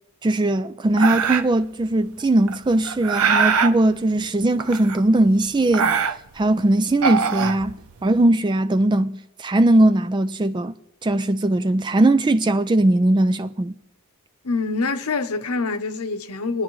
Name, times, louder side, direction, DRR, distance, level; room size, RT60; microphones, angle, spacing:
voice 1, 0.2-6.0 6.4-7.7 8.0-10.7 11.0-13.7, right 1 dB, 20° right, 0.3 m, -19 dB
sound 1, 1.0-1.6 2.5-3.8 4.6-5.2 5.5-6.5 6.9-8.1, right 6 dB, 75° right, 0.6 m, -22 dB
voice 2, 14.4-16.6, left 3 dB, 80° left, 0.9 m, -25 dB
24.0 x 9.6 x 3.1 m
head